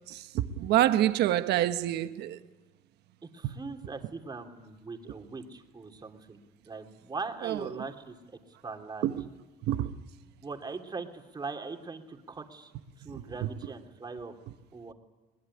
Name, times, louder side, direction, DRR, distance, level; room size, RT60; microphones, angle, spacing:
voice 1, 0.1-2.4 3.4-3.6 7.4-7.8 9.0-9.2 9.7-9.9 13.1-13.5, right 13 dB, 80° right, 1.3 m, -27 dB
voice 2, 3.2-6.4 6.7-8.2 8.5-9.1 10.4-12.7 13.0-14.3 14.7-14.9, right 4 dB, 25° right, 3.1 m, -40 dB
22.0 x 20.5 x 9.9 m
cardioid pair, 110°, 17 cm